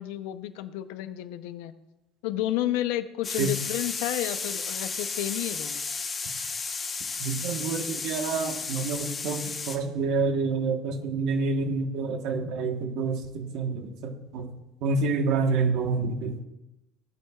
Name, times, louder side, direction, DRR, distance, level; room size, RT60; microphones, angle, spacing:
voice 1, 0.0-1.8 2.2-5.8, left 13 dB, 85° left, 10 dB, 0.7 m, -31 dB
sound 1, 3.2-9.8, left 4 dB, 20° left, 1.1 m, -33 dB
voice 2, 7.2-14.5 14.8-16.4, right 4 dB, 55° right, 4 dB, 1.4 m, -28 dB
17.5 x 8.5 x 2.4 m, 0.97 s
cardioid pair, 160°, 0 cm